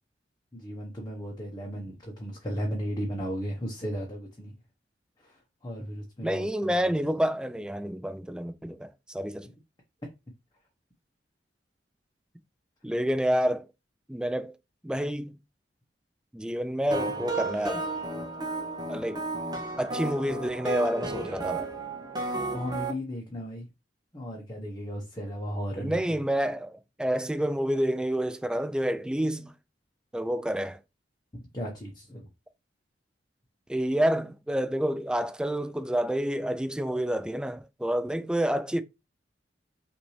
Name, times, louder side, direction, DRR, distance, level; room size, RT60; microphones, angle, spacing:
voice 1, 0.5-4.6 5.2-6.9 9.4-9.5 22.5-23.7 24.1-26.2 31.3-32.3, equal, 25° left, 0.9 m, -35 dB
voice 2, 6.2-9.5 12.8-13.7 14.1-14.5 14.8-15.4 16.3-17.9 18.9-19.2 19.8-21.7 25.8-29.5 30.1-30.8 33.7-38.8, equal, 5° right, 0.3 m, -28 dB
sound 1, 16.9-22.9, right 2 dB, 25° right, 0.8 m, -33 dB
5.9 x 2.6 x 3.1 m
head